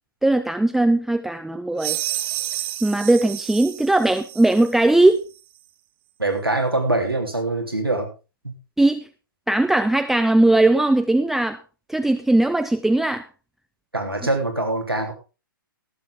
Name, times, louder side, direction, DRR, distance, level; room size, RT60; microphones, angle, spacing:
voice 1, 0.2-2.0 2.8-5.2 8.8-9.1 9.5-11.6 11.9-13.2, right 2 dB, ahead, 8 dB, 0.5 m, -19 dB
sound 1, 1.8-4.8, right 15 dB, 30° right, 1.4 m, -30 dB
voice 2, 6.2-8.1 8.4-8.5 13.9-15.1, right 2 dB, 90° right, 2 dB, 3.1 m, -23 dB
18.5 x 7.7 x 3.7 m, 0.32 s
figure-of-eight pair, 120°, 12 cm